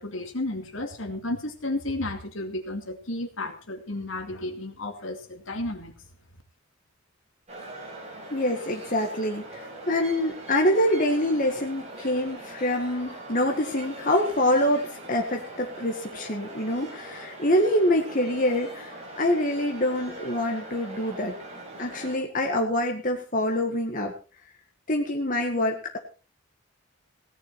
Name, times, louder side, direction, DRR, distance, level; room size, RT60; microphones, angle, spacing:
voice 1, 0.0-5.9, left 2 dB, 70° left, 5 dB, 2.4 m, -32 dB
sound 1, 7.5-22.2, right 2 dB, 30° right, 4.8 m, -41 dB
voice 2, 8.3-21.4 21.8-24.1 24.9-26.0, left 1 dB, 40° left, 2 dB, 1.7 m, -25 dB
17.5 x 10.5 x 4.3 m, 0.36 s
head